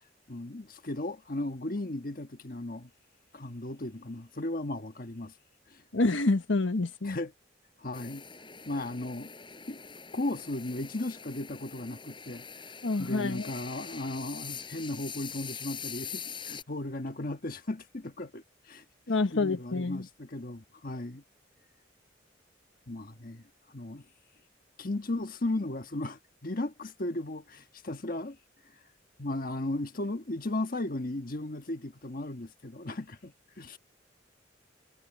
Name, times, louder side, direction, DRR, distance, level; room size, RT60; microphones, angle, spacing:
voice 1, 0.3-2.9 3.3-5.3 5.7-5.8 7.0-7.3 7.8-8.2 8.7-9.3 9.7-9.8 10.1-12.4 13.0-18.8 19.3-21.2 22.9-23.4 23.7-24.0 24.8-28.4 29.2-33.8, left 2 dB, 50° left, 1.4 m, -36 dB
voice 2, 5.9-7.2 12.8-13.5 19.1-20.1, left 2 dB, 90° left, 1.2 m, -27 dB
sound 1, 7.9-16.6, left 6 dB, 25° left, 7.8 m, -43 dB
head